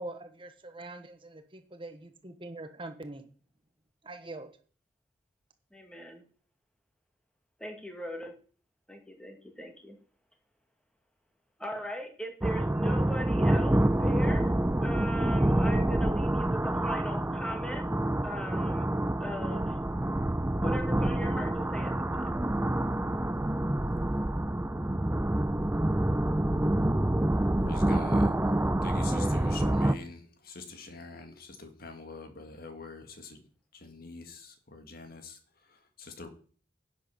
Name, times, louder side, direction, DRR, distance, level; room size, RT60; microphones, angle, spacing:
voice 1, 0.0-3.3 4.0-4.5, right 2 dB, 30° right, 8 dB, 1.1 m, -43 dB
voice 2, 5.7-6.2 7.6-8.3 8.9-10.0 11.6-14.5 14.8-17.9 18.2-19.8 20.6-22.3, equal, 5° left, 3 dB, 2.2 m, -39 dB
sound 1, 12.4-29.9, right 1 dB, 10° right, 0.5 m, -27 dB
voice 3, 27.6-28.3 28.8-33.4 33.7-36.3, left 3 dB, 55° left, 6 dB, 1.9 m, -45 dB
11.0 x 7.6 x 6.0 m, 0.42 s
head